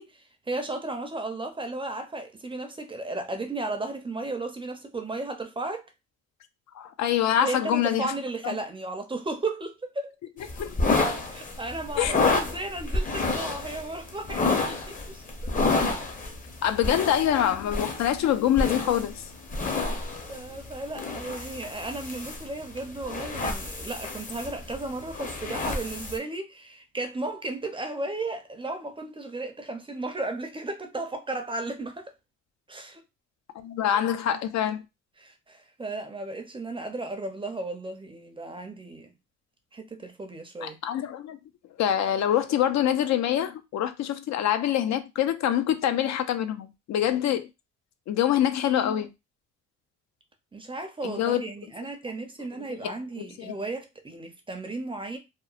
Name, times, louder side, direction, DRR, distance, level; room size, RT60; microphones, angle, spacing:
voice 1, 0.0-5.9 7.4-10.1 11.3-15.2 19.7-32.1 32.7-33.0 35.2-39.1 39.7-40.8 50.5-55.2, right 2 dB, 15° right, 0.5 m, -35 dB
voice 2, 6.7-8.1 8.4-8.6 10.5-10.8 12.0-12.4 16.6-19.2 33.5-34.8 40.6-41.4 41.8-47.5 48.1-49.1 51.0-51.4 52.7-53.6, left 10 dB, 65° left, 0.4 m, -25 dB
sound 1, 10.4-26.2, left 3 dB, 25° left, 0.6 m, -30 dB
2.8 x 2.0 x 2.4 m
cardioid pair, 90°, 30 cm